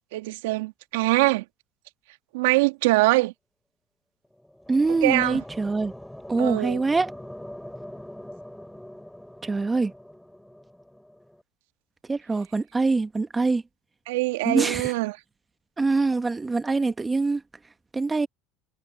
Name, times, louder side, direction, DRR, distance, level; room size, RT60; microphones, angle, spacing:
voice 1, 0.1-1.4 2.3-3.3 5.0-5.4 6.4-6.8 14.1-15.2, right 21 dB, 75° right, 2.2 m, -23 dB
sound 1, 4.2-11.4, left 1 dB, 5° left, 7.8 m, -43 dB
voice 2, 4.7-5.9 6.3-7.1 9.4-9.9 12.1-13.6 14.4-14.9 15.8-17.4 17.9-18.3, right 3 dB, 20° right, 1.5 m, -24 dB
hypercardioid pair, 80°, 0 cm